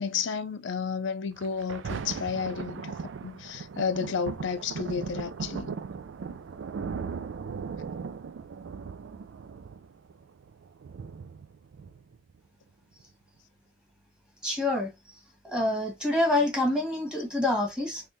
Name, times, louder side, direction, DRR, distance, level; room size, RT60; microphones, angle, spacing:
voice 1, 0.0-5.8, left 6 dB, 75° left, 0.4 m, -32 dB
Thunder, 1.4-12.4 13.0-13.1, right 5 dB, 75° right, 0.4 m, -38 dB
voice 2, 14.4-14.9 15.4-18.0, left 1 dB, 5° right, 1.4 m, -26 dB
3.7 x 3.1 x 2.6 m
head